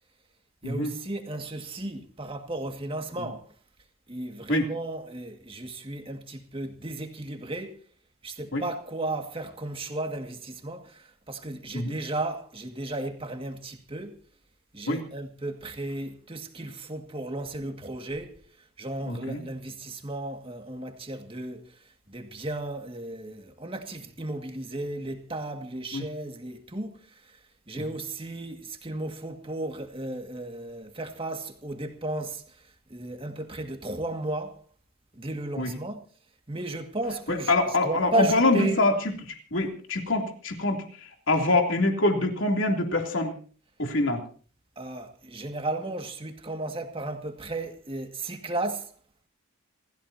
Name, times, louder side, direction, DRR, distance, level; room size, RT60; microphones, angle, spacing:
voice 1, 0.6-3.5 4.1-7.8 8.2-14.2 14.7-18.4 18.8-21.8 22.1-27.4 27.7-34.6 35.1-36.0 36.5-37.5 37.8-38.8 44.8-48.9, right 2 dB, 25° right, 2.1 m, -34 dB
voice 2, 19.1-19.4 25.9-26.0 27.8-27.9 35.6-35.7 37.3-38.9 39.5-40.8 41.3-43.3 43.8-44.2, left 2 dB, 60° left, 3.1 m, -24 dB
28.0 x 15.0 x 2.8 m
head